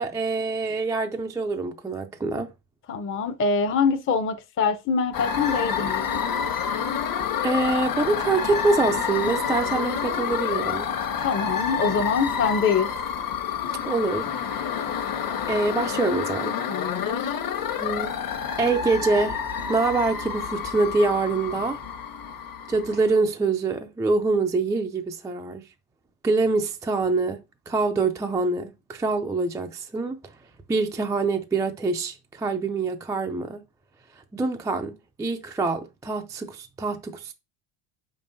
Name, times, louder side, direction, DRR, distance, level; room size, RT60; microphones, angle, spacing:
voice 1, 0.0-2.5 6.7-6.8 7.4-10.9 13.9-14.9 15.5-16.6 17.8-18.1 18.6-19.4 19.7-21.8 22.7-25.6 26.2-30.2 30.7-33.6 34.1-37.3, right 3 dB, 10° right, 0.3 m, -25 dB
voice 2, 2.9-6.1 11.2-12.9 16.7-17.4, left 5 dB, 25° left, 0.7 m, -24 dB
sound 1, 5.1-23.1, left 7 dB, 45° left, 1.2 m, -28 dB
6.6 x 5.5 x 2.6 m
supercardioid pair, 110°, 49 cm